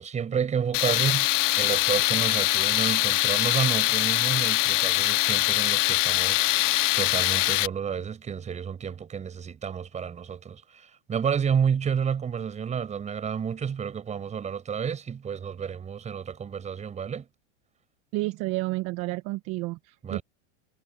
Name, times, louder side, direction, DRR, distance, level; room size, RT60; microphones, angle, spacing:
voice 1, 0.0-17.3 20.0-20.2, right 7 dB, 20° right, 7.6 m, -30 dB
Tools, 0.7-7.7, left 18 dB, 80° left, 0.7 m, -23 dB
voice 2, 18.1-20.2, right 21 dB, 45° right, 1.5 m, -30 dB
supercardioid pair, 155°, 37 cm